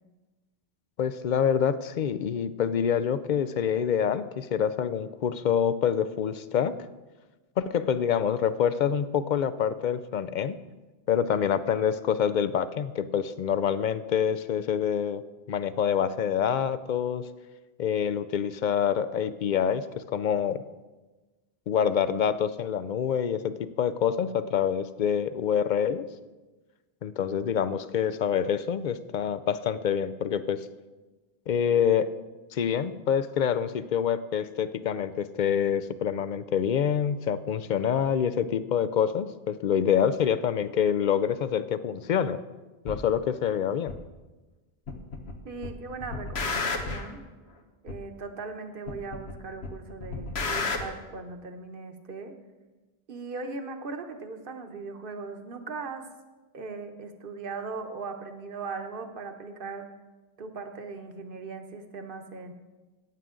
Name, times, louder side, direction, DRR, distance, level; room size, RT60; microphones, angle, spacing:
voice 1, 1.0-6.7 7.6-10.6 11.1-15.2 15.5-17.3 17.8-19.8 20.1-20.6 21.7-26.1 27.0-30.7 31.5-32.1 32.5-42.4 42.8-43.9, left 8 dB, 55° left, 13 dB, 0.6 m, -26 dB
sound 1, 42.9-43.0 43.9-44.0 44.9-45.3 45.6-47.1 47.9-48.0 48.9-49.3 49.6-50.8, left 4 dB, 85° left, 1.4 m, -31 dB
voice 2, 45.4-47.2 47.8-52.3 53.1-56.1 56.5-59.9 60.4-62.5, right 4 dB, 60° right, 6 dB, 1.2 m, -39 dB
15.0 x 9.2 x 3.8 m, 1.2 s
omnidirectional pair, 1.0 m